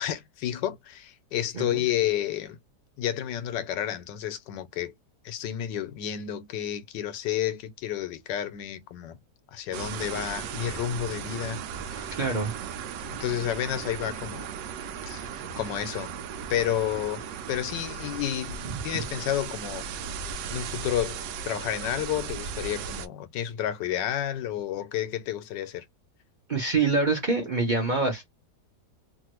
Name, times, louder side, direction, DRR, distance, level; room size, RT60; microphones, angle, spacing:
voice 1, 0.0-2.6 3.0-4.9 5.2-9.2 9.5-12.2 13.2-14.5 15.1-16.1 16.5-19.9 20.5-25.8, left 11 dB, 90° left, 1.3 m, -31 dB
sound 1, 9.7-23.1, right 7 dB, 85° right, 1.3 m, -36 dB
voice 2, 12.1-12.5 18.6-18.7 26.5-28.3, right 3 dB, 40° right, 0.7 m, -25 dB
3.0 x 2.5 x 2.9 m
omnidirectional pair, 1.9 m